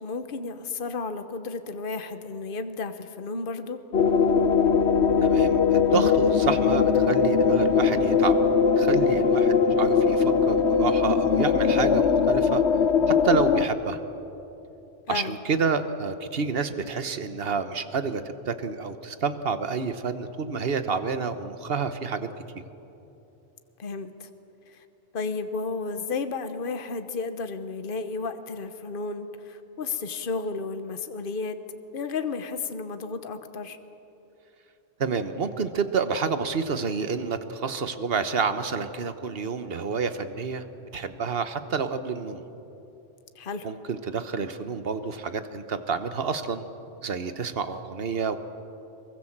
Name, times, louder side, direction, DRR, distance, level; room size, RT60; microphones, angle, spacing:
voice 1, 0.0-3.8 15.1-15.4 23.8-24.3 24.7-24.8 25.1-31.6 31.9-33.8 43.3-43.7, left 4 dB, 50° left, 9 dB, 1.2 m, -33 dB
sound 1, 3.9-13.6, left 6 dB, 70° left, 1.2 m, -21 dB
voice 2, 5.2-8.4 8.8-12.6 13.2-14.0 15.1-22.3 35.0-40.6 40.9-42.4 43.6-46.6 47.0-48.4, right 5 dB, 55° right, 10 dB, 1.3 m, -29 dB
24.0 x 22.5 x 7.4 m, 2.9 s
omnidirectional pair, 1.2 m